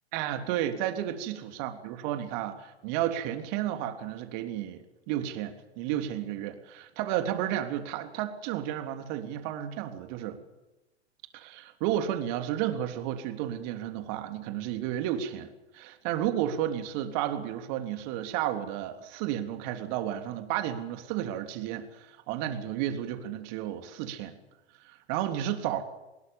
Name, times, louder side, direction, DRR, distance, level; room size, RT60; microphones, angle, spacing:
voice 1, 0.1-10.4 11.3-24.4 24.8-25.8, right 11 dB, 45° right, 7 dB, 3.3 m, -32 dB
24.0 x 21.0 x 7.2 m, 1.0 s
figure-of-eight pair, 100°, 33 cm